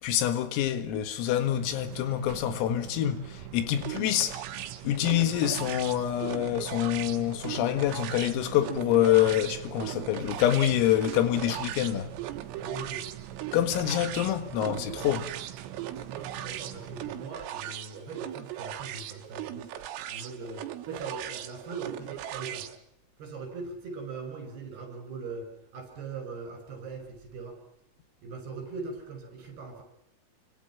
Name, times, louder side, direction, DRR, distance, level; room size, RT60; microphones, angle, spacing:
voice 1, 0.0-4.4 4.8-12.1 13.5-15.3, left 11 dB, 85° left, 4.4 m, -26 dB
sound 1, 1.5-17.3, right 13 dB, 70° right, 3.0 m, -44 dB
sound 2, 3.8-22.8, right 12 dB, 90° right, 4.1 m, -39 dB
voice 2, 12.6-13.0 14.5-14.8 16.1-19.7 20.1-22.7 23.2-27.6 28.2-29.8, right 4 dB, 50° right, 7.9 m, -40 dB
29.0 x 25.0 x 6.0 m
omnidirectional pair, 5.9 m